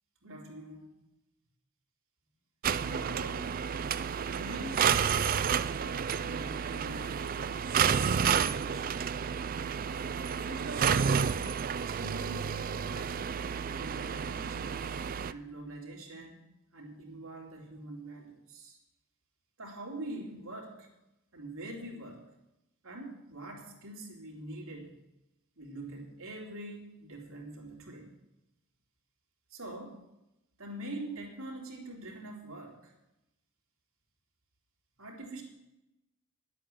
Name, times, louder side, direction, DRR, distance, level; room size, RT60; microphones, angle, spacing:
voice 1, 0.2-0.9 2.8-3.5 4.3-5.4 5.7-7.2 7.8-9.0 10.3-13.2 13.7-14.8 15.2-16.4 16.7-18.8 19.6-20.9 21.3-22.2 22.8-24.9 25.6-28.1 29.5-30.0 30.6-32.9 35.0-35.4, right 1 dB, 75° right, -1 dB, 3.2 m, -44 dB
sound 1, 2.6-15.3, right 7 dB, 40° right, 0.4 m, -30 dB
11.0 x 8.3 x 7.8 m, 0.91 s
head